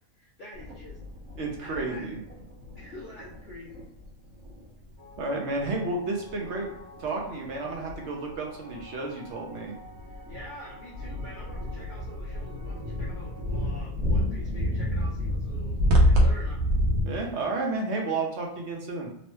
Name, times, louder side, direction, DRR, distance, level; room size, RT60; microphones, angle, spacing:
voice 1, 0.1-1.0 1.6-2.1 2.7-3.9 10.1-16.6, left 1 dB, 60° left, -4 dB, 0.5 m, -46 dB
sound 1, 0.5-5.2 5.6-5.8 6.1-8.0 8.3-8.4 8.7-8.9 9.6-17.0, equal, 85° right, 1.1 m, -28 dB
voice 2, 1.4-2.2 5.2-6.7 7.0-9.7 17.0-19.1, right 3 dB, 65° right, 0 dB, 0.8 m, -31 dB
sound 2, 5.0-13.9, left 1 dB, 30° right, 0.5 m, -50 dB
3.0 x 2.1 x 3.0 m, 0.79 s
omnidirectional pair, 1.4 m